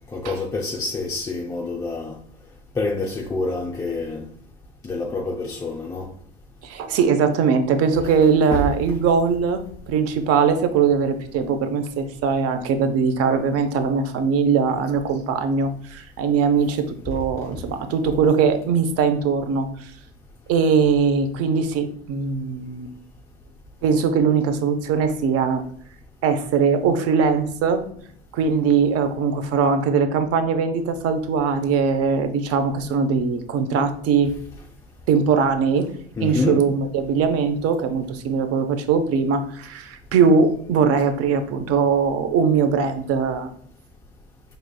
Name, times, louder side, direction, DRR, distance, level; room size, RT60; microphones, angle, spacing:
voice 1, 0.1-2.2 2.7-4.3 4.8-6.1 8.5-8.6 36.2-36.6, left 3 dB, 10° left, 0.4 m, -27 dB
voice 2, 6.6-19.9 20.5-22.9 23.8-25.6 26.2-27.8 28.3-34.3 35.1-35.9 36.2-43.5, right 5 dB, 45° right, 0.7 m, -21 dB
4.6 x 3.2 x 2.2 m
hypercardioid pair, 90°, 33 cm